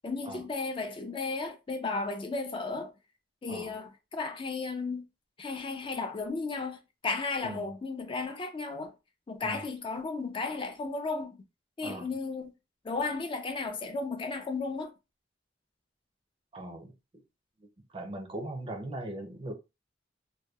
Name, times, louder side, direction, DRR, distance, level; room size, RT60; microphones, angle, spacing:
voice 1, 0.0-2.9 3.4-5.1 5.4-8.9 9.3-11.4 11.8-12.5 12.8-14.9, left 3 dB, 30° left, 0.3 m, -34 dB
voice 2, 16.5-16.9 17.9-19.5, right 1 dB, 30° right, 0.5 m, -39 dB
2.7 x 2.2 x 2.3 m
head